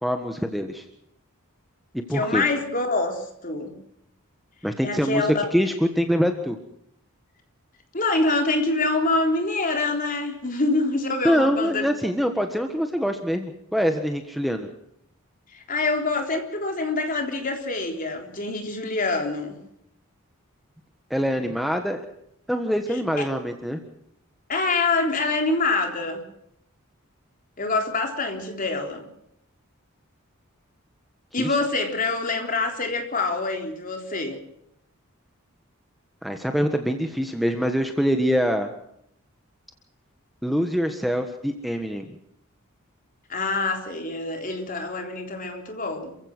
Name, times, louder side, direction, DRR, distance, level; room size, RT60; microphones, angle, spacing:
voice 1, 0.0-0.8 2.1-2.4 4.6-6.6 11.2-14.7 21.1-22.0 22.5-23.8 31.4-31.5 36.2-38.7 40.4-42.1, equal, ahead, 1.5 m, -24 dB
voice 2, 2.1-3.7 4.8-5.5 7.9-11.8 15.5-19.6 23.2-23.3 24.5-26.2 27.6-29.1 31.3-34.4 43.3-46.2, left 3 dB, 40° left, 3.8 m, -25 dB
28.5 x 15.5 x 6.2 m
head